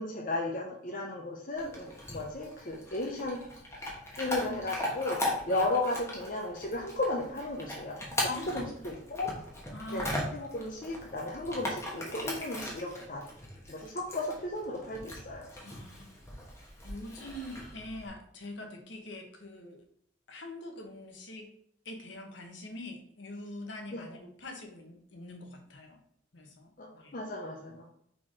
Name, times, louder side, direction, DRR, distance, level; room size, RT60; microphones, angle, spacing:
voice 1, 0.0-3.4 4.2-9.3 9.9-13.2 13.7-15.5 23.9-24.1 26.8-27.8, left 2 dB, 45° left, -1 dB, 0.7 m, -35 dB
Chewing mastication / Dog, 1.6-18.1, left 1 dB, 15° left, 1.2 m, -39 dB
voice 2, 8.3-8.7 9.7-10.1 15.6-16.1 16.8-19.8 20.3-21.5 21.8-26.0 26.3-27.2, left 1 dB, 65° left, 3 dB, 1.1 m, -44 dB
4.6 x 4.4 x 4.7 m, 0.68 s
head